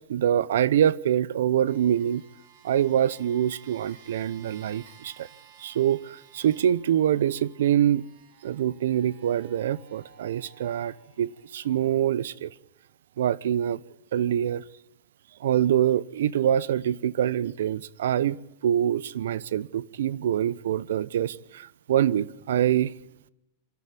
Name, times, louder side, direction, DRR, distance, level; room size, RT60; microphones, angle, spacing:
voice 1, 0.1-2.2 2.6-5.3 5.6-8.0 8.4-12.5 13.2-13.8 14.1-14.6 15.4-18.4 18.6-22.9, right 10 dB, 75° right, 0.8 m, -25 dB
sound 1, 1.6-12.1 12.9-13.0, right 8 dB, 55° right, 4.1 m, -55 dB
27.5 x 13.0 x 8.4 m
supercardioid pair, 170°, 0 cm